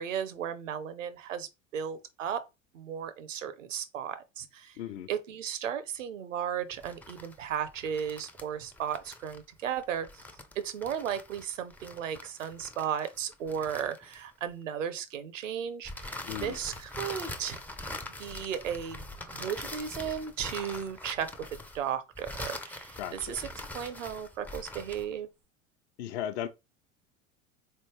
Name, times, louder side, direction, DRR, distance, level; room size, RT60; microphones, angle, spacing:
voice 1, 0.0-2.4 2.7-4.8 5.1-10.1 10.6-17.6 18.2-23.5 23.7-25.3, right 8 dB, 75° right, 0.7 m, -35 dB
voice 2, 4.8-5.1 16.2-16.6 23.0-23.4 26.0-26.5, left 11 dB, 60° left, 0.7 m, -36 dB
sound 1, 6.7-14.5 15.9-25.1, left 1 dB, 5° left, 0.4 m, -43 dB
4.0 x 3.3 x 3.1 m
figure-of-eight pair, 75°, 39 cm